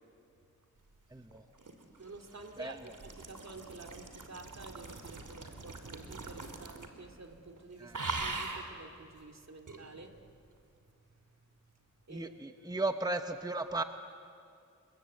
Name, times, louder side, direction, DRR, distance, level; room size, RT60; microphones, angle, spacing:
voice 1, 1.1-1.4 2.6-2.8 7.8-8.0 12.1-13.8, right 2 dB, 10° right, 7 dB, 1.0 m, -35 dB
sound 1, 1.3-7.1 7.3-7.6 7.9-8.7 9.7-9.8, right 3 dB, 80° right, 2.6 m, -42 dB
voice 2, 2.0-10.4 12.1-12.8, right 3 dB, 60° right, 4 dB, 2.3 m, -50 dB
30.0 x 22.5 x 8.4 m, 2.3 s
wide cardioid pair, 80°, 31 cm